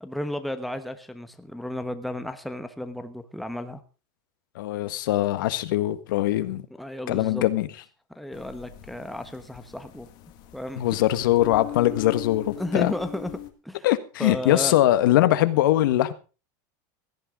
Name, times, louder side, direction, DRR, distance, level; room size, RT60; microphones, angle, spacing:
voice 1, 0.0-3.8 6.8-7.4 8.1-10.1 10.5-10.8 12.6-13.3 13.6-13.9 14.2-14.8, left 1 dB, ahead, 1.1 m, -33 dB
voice 2, 4.5-6.6 7.1-7.7 10.8-12.9 13.8-16.1, left 14 dB, 80° left, 1.5 m, -22 dB
sound 1, 8.3-13.5, left 15 dB, 40° left, 2.0 m, -40 dB
17.0 x 13.5 x 3.7 m
supercardioid pair, 165°, 11 cm